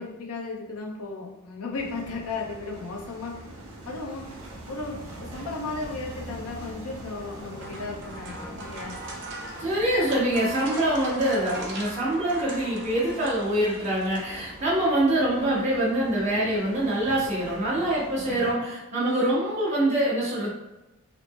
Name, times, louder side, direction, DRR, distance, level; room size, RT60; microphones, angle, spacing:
voice 1, 0.0-3.5 3.9-4.4 4.7-9.0, left 3 dB, 80° left, 0 dB, 0.7 m, -35 dB
sound 1, 1.7-18.5, right 1 dB, 85° right, 1.1 m, -43 dB
sound 2, 7.2-14.8, right 1 dB, 50° right, 0.5 m, -40 dB
voice 2, 9.6-20.5, right 1 dB, 30° right, -8 dB, 1.2 m, -25 dB
4.0 x 2.1 x 3.2 m, 1.0 s
head